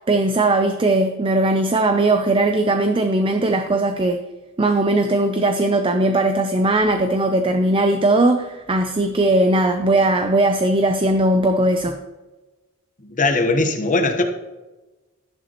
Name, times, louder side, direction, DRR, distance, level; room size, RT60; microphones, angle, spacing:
voice 1, 0.1-4.2 4.6-12.0, right 2 dB, 25° right, 7 dB, 0.5 m, -19 dB
voice 2, 13.1-14.2, left 2 dB, 35° left, 5 dB, 1.1 m, -19 dB
12.5 x 10.5 x 3.0 m, 1.1 s
head